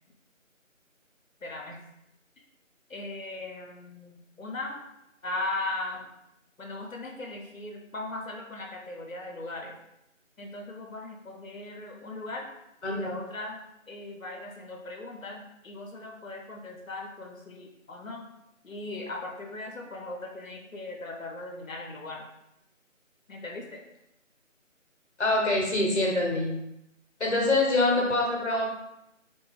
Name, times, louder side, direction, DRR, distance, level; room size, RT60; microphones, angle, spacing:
voice 1, 1.4-1.8 2.9-4.8 5.2-6.1 6.6-9.8 10.4-12.5 12.9-13.6 13.9-18.2 18.6-22.3 23.3-23.8, left 2 dB, 80° left, 1 dB, 0.8 m, -38 dB
voice 2, 12.8-13.1 25.2-26.5 27.2-28.7, left 2 dB, 60° left, -1 dB, 1.0 m, -25 dB
2.8 x 2.2 x 3.3 m, 0.87 s
figure-of-eight pair, 165°, 39 cm